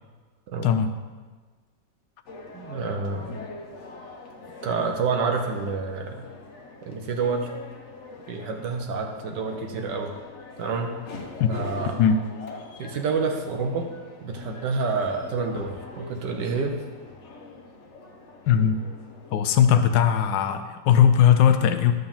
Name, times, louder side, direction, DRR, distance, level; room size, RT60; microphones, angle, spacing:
voice 1, 0.5-0.8 2.5-3.4 4.6-6.2 6.8-7.5 8.3-10.1 10.6-11.0 11.5-12.0 12.8-13.9 14.2-16.7, right 4 dB, 70° right, 3 dB, 1.5 m, -28 dB
sound 1, 2.3-19.3, left 3 dB, 50° left, 1.0 m, -43 dB
voice 2, 18.5-18.8 19.3-21.9, left 8 dB, 80° left, 9 dB, 1.3 m, -19 dB
11.5 x 3.9 x 7.1 m, 1.4 s
omnidirectional pair, 2.0 m